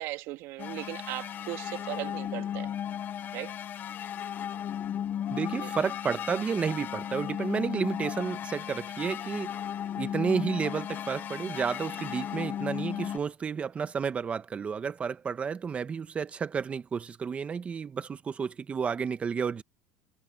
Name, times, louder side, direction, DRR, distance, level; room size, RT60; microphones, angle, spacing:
voice 1, 0.0-2.7 3.3-3.6 5.6-5.7, right 17 dB, 60° right, 1.9 m, -38 dB
sound 1, 0.6-13.2, left 10 dB, 35° left, 0.7 m, -35 dB
voice 2, 5.3-9.6 10.0-19.6, right 6 dB, 20° right, 1.1 m, -31 dB
supercardioid pair, 140°, 6 cm